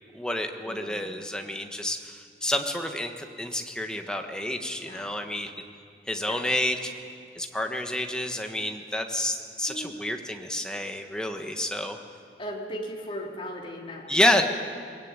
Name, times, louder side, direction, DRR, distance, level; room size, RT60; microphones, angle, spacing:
voice 1, 0.1-5.5 6.1-6.9 7.3-12.0 14.1-14.4, left 1 dB, 5° left, 4 dB, 1.5 m, -29 dB
voice 2, 0.6-1.1 4.8-5.1 6.3-6.4 9.7-10.1 11.1-11.2 12.4-14.1 14.3-14.4, equal, 30° left, -1 dB, 3.5 m, -38 dB
22.5 x 20.5 x 9.1 m, 2.3 s
head